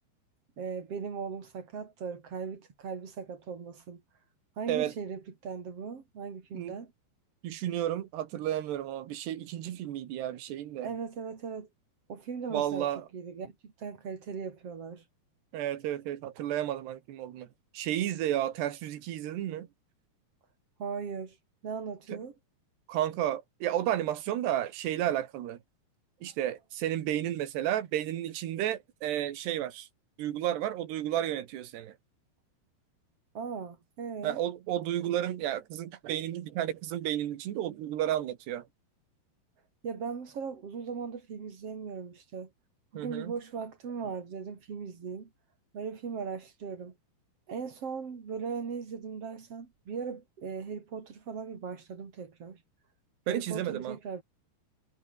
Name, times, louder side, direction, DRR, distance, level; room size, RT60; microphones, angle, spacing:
voice 1, 0.6-4.0 4.6-6.9 10.8-11.7 12.1-15.0 20.8-21.4 21.6-22.3 33.3-34.4 39.8-42.5 42.9-45.3 45.7-47.0 47.5-52.6 53.3-54.2, right 6 dB, 40° right, 3.8 m, -38 dB
voice 2, 7.4-10.9 12.5-13.1 15.5-17.5 17.7-19.7 22.1-22.2 22.9-25.6 26.2-29.9 30.2-32.0 34.2-38.7 43.0-43.3 53.3-54.0, right 12 dB, 85° right, 3.9 m, -32 dB
omnidirectional pair, 4.7 m